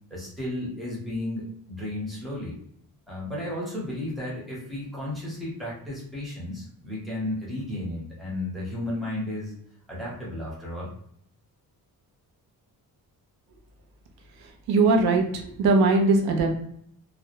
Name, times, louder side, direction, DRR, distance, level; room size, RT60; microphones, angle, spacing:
voice 1, 0.1-2.6 3.1-9.5 9.9-10.9, left 1 dB, ahead, -7 dB, 0.7 m, -33 dB
voice 2, 14.7-16.5, right 3 dB, 90° right, 3 dB, 0.6 m, -20 dB
2.2 x 2.0 x 2.9 m, 0.68 s
wide cardioid pair, 175°, 36 cm